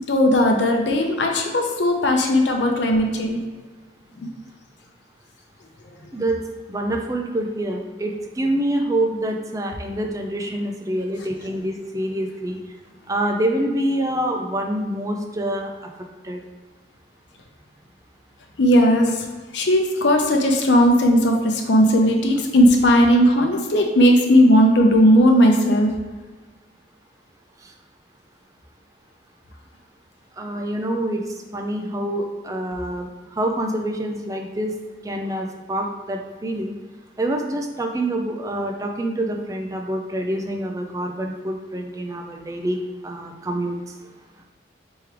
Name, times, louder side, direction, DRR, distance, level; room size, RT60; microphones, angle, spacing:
voice 1, 0.1-3.4 4.2-4.3 18.6-19.3 19.5-25.9, equal, 85° left, 2 dB, 0.6 m, -17 dB
voice 2, 6.7-12.6 13.1-15.9 16.2-16.4 27.6-27.7 30.3-34.8 35.0-36.7 37.2-44.1, right 1 dB, 20° right, 2 dB, 0.4 m, -26 dB
3.6 x 3.3 x 4.5 m, 1.3 s
head